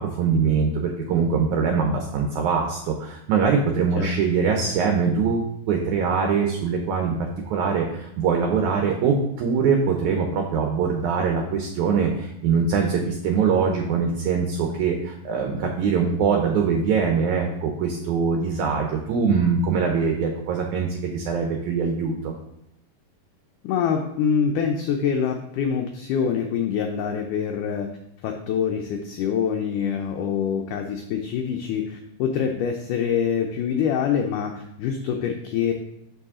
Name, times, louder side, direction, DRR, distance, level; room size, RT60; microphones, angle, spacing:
voice 1, 0.2-7.2 7.5-22.3, right 5 dB, 75° right, 2 dB, 1.8 m, -23 dB
voice 2, 23.6-27.9 28.2-35.7, left 7 dB, 80° left, 3 dB, 1.9 m, -25 dB
6.9 x 6.1 x 3.6 m, 0.78 s
omnidirectional pair, 4.2 m